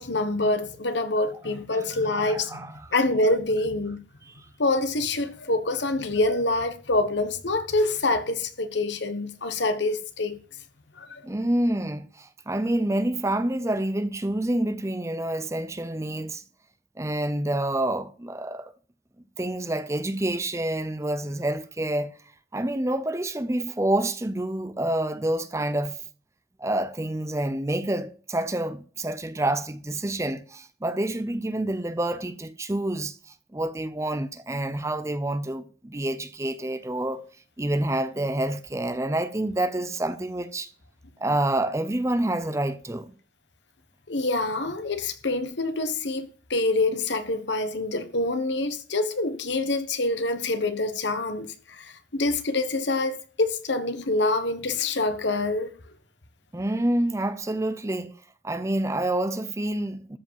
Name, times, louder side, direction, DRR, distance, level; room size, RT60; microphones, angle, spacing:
voice 1, 0.0-4.0 4.6-10.4 11.0-11.2 44.1-55.7, left 2 dB, 70° left, 1.3 m, -26 dB
voice 2, 2.1-2.8 4.3-4.5 11.2-16.4 17.0-18.7 19.4-22.1 22.5-26.0 26.6-33.2 33.5-37.3 37.6-40.7 41.2-43.1 56.5-58.1 58.4-60.2, right 1 dB, 15° right, 0.6 m, -28 dB
13.5 x 5.0 x 7.4 m
head